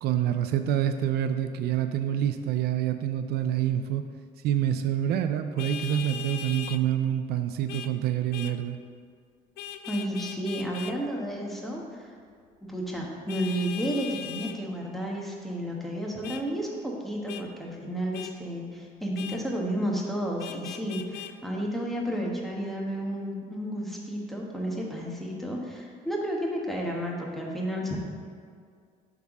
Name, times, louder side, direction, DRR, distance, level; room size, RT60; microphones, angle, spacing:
voice 1, 0.0-4.0 4.4-8.8, right 10 dB, 70° right, 8 dB, 0.4 m, -27 dB
Vehicle horn car horn honking, 5.6-6.8 7.7-7.9 8.3-8.6 9.6-11.0 13.3-14.6 16.2-16.4 17.3-17.4 18.1-18.3 19.1-19.4 20.4-21.3, left 9 dB, 70° left, 0.4 m, -39 dB
voice 2, 9.8-12.1 12.7-28.0, equal, ahead, -2 dB, 1.3 m, -32 dB
8.0 x 3.6 x 6.0 m, 2.1 s
cardioid pair, 110°, 17 cm